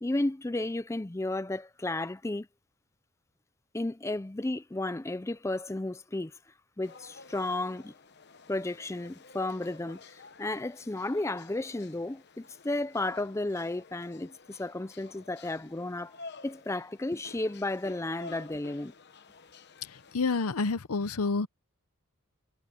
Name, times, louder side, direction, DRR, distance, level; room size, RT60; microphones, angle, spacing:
voice 1, 0.0-2.5 3.7-6.3 6.8-7.9 8.5-16.1 16.4-18.9, left 2 dB, 15° left, 0.4 m, -33 dB
sound 1, 6.8-20.2, left 4 dB, 50° left, 1.0 m, -51 dB
voice 2, 19.8-21.5, left 4 dB, 80° left, 0.8 m, -29 dB
head